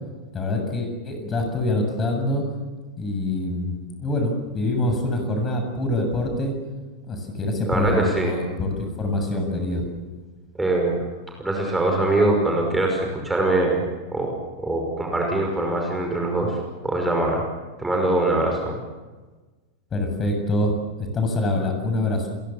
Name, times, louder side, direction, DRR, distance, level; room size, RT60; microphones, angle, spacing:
voice 1, 0.3-2.4 3.0-3.7 4.0-6.5 7.1-9.9 19.9-20.7 21.0-22.3, left 1 dB, 25° left, 4 dB, 7.5 m, -25 dB
voice 2, 7.7-8.4 10.6-10.9 11.4-13.8 14.1-16.5 16.8-17.4 17.8-18.7, right 2 dB, 10° right, 1 dB, 5.7 m, -23 dB
29.0 x 22.5 x 7.2 m, 1.3 s
figure-of-eight pair, 90°, 0 cm